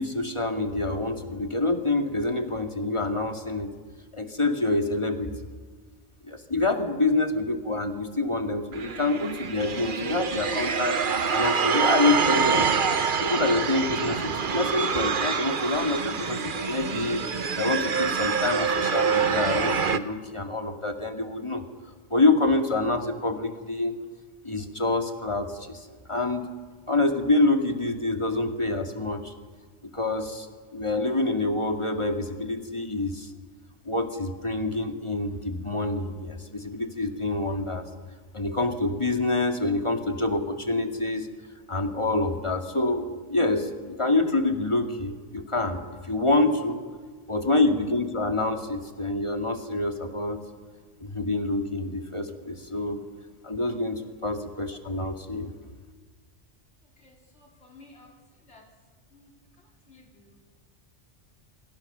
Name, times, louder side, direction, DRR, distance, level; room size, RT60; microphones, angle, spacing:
voice 1, 0.0-3.7 4.1-5.3 6.2-11.0 11.3-12.8 13.2-17.3 17.6-21.6 22.1-24.0 24.4-26.5 26.9-29.3 29.9-30.5 30.7-33.3 33.8-37.8 38.3-41.3 41.7-46.8 47.3-50.4 51.0-53.0 53.4-55.5, left 2 dB, 25° left, 5 dB, 2.0 m, -26 dB
sound 1, 8.7-20.0, right 6 dB, 50° right, 1.1 m, -26 dB
voice 2, 56.8-58.7 59.1-60.5, left 2 dB, 70° left, 0 dB, 3.9 m, -55 dB
27.0 x 24.0 x 6.8 m, 1.5 s
omnidirectional pair, 1.2 m